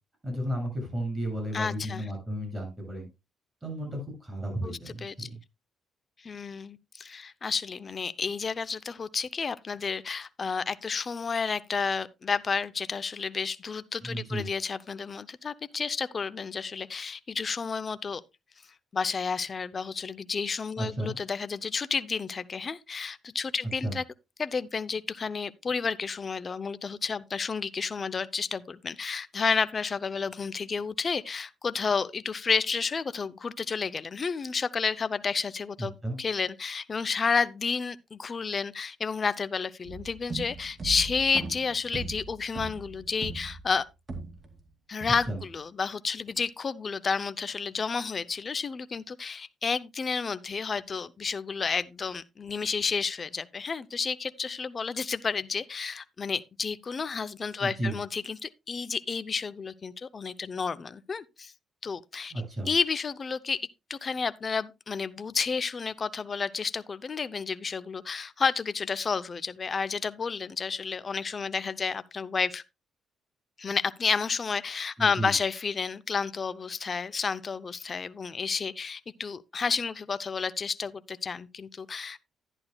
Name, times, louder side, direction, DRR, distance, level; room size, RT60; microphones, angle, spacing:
voice 1, 0.2-3.1 3.6-5.4 14.0-14.5 20.8-21.2 23.8-24.0 36.0-36.2 45.3-45.4 57.6-58.0 62.3-62.7 75.0-75.3, right 1 dB, 15° right, 7.1 m, -33 dB
voice 2, 1.5-2.1 4.6-5.3 6.2-18.2 18.9-24.0 24.4-43.8 44.9-61.5 61.8-62.3 62.7-72.6 73.6-82.2, left 5 dB, 40° left, 0.6 m, -31 dB
sound 1, 39.8-44.6 45.0-45.6, right 3 dB, 35° right, 2.5 m, -39 dB
11.5 x 10.5 x 2.3 m
cardioid pair, 90°, 0 cm